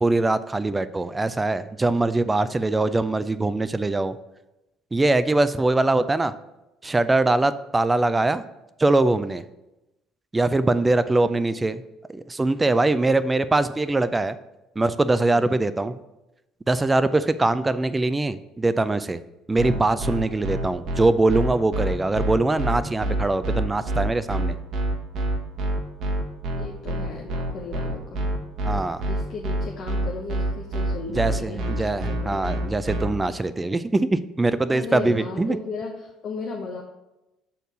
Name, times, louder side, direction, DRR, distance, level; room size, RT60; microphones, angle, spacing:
voice 1, 0.0-4.1 4.9-6.3 6.8-8.4 8.8-9.4 10.3-11.8 12.1-14.4 14.8-16.0 16.7-19.2 19.5-24.6 28.6-29.0 31.1-35.6, right 2 dB, 20° right, 13 dB, 0.4 m, -22 dB
sound 1, 19.6-33.1, right 1 dB, 55° right, 1.1 m, -26 dB
voice 2, 26.5-28.3 29.0-32.7 34.7-36.8, left 4 dB, 45° left, -1 dB, 1.0 m, -35 dB
6.5 x 4.4 x 6.1 m, 0.95 s
figure-of-eight pair, 55°, 0 cm